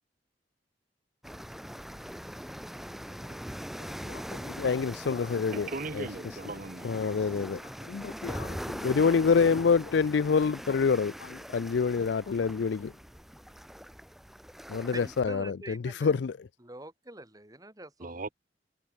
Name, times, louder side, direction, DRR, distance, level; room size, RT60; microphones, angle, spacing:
sound 1, 1.2-15.2, equal, ahead, 3.2 m, -42 dB
voice 1, 4.1-5.7 6.0-6.1 6.8-7.6 7.9-12.9 14.7-15.5 15.8-16.3, left 5 dB, 70° left, 0.4 m, -27 dB
voice 2, 5.5-7.0 18.0-18.3, right 3 dB, 50° right, 1.4 m, -38 dB
voice 3, 14.9-16.2 16.6-18.3, right 2 dB, 20° right, 6.7 m, -45 dB
head